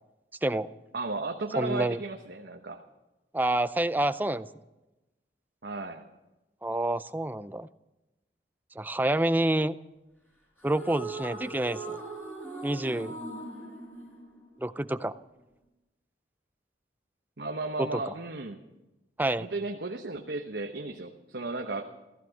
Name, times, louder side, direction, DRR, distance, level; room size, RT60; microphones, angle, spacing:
voice 1, 0.9-2.8 5.6-6.0 17.4-18.6 19.4-21.9, right 3 dB, 70° right, 2 dB, 1.1 m, -34 dB
voice 2, 1.6-2.0 3.3-4.5 6.6-7.7 8.8-9.8 10.6-12.0 12.6-13.2 14.6-15.1 17.8-18.1 19.2-19.5, right 1 dB, 10° right, 13 dB, 0.4 m, -28 dB
sound 1, 10.6-15.0, right 3 dB, 10° left, 4.6 m, -40 dB
15.5 x 14.0 x 6.4 m, 1.0 s
head